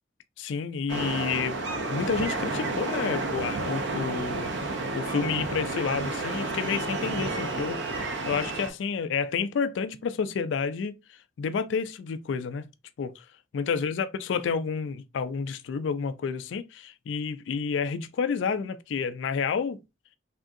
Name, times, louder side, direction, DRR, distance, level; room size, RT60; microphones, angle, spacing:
voice 1, 0.4-1.6 1.9-4.5 4.9-10.9 11.4-12.6 13.0-13.2 13.5-19.8, left 6 dB, 70° left, 0.3 m, -30 dB
sound 1, 0.9-8.7, right 2 dB, 65° right, 0.6 m, -31 dB
3.5 x 2.6 x 2.4 m
head